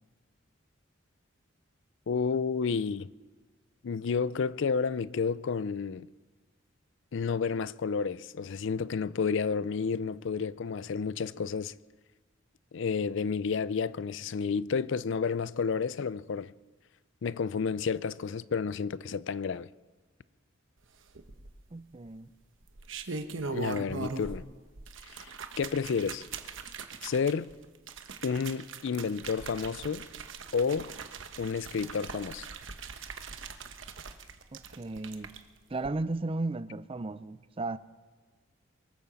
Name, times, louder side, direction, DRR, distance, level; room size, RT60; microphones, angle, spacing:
voice 1, 2.1-3.1 3.8-6.1 7.1-11.7 12.7-16.5 17.2-19.7 23.5-24.4 25.2-25.3 25.6-26.2 27.0-27.5 28.2-30.1 30.5-30.9 31.4-32.5, left 5 dB, 60° left, 0.4 m, -31 dB
sound 1, 21.2-21.8 22.6-24.5 24.8-35.4 35.8-35.9, right 4 dB, 65° right, 1.1 m, -41 dB
voice 2, 21.7-22.3 34.5-35.3 35.7-37.8, right 2 dB, 25° right, 0.5 m, -35 dB
23.5 x 8.8 x 7.0 m
head